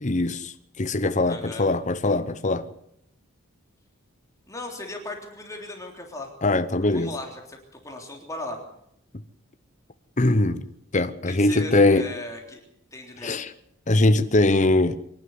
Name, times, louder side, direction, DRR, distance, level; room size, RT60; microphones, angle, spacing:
voice 1, 0.0-2.7 6.4-7.1 10.2-10.7 10.9-12.1 13.2-13.5 13.9-15.0, left 2 dB, 35° left, 0.9 m, -21 dB
voice 2, 1.2-1.7 4.5-6.3 6.8-7.6 7.8-8.6 11.3-12.6 12.9-13.4, left 2 dB, 15° left, 3.4 m, -37 dB
24.5 x 11.5 x 9.6 m
head